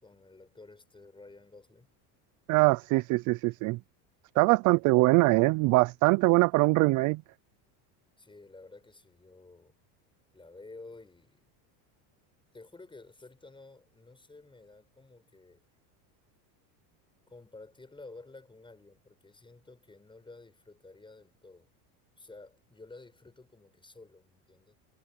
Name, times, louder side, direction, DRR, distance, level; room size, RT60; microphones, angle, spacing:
voice 1, 0.0-1.9 8.2-9.8 10.3-11.5 12.5-15.6 17.3-21.7 22.2-24.8, left 3 dB, 10° left, 5.9 m, -52 dB
voice 2, 2.5-3.8 4.4-7.2, right 23 dB, 40° right, 0.4 m, -23 dB
supercardioid pair, 120°, 48 cm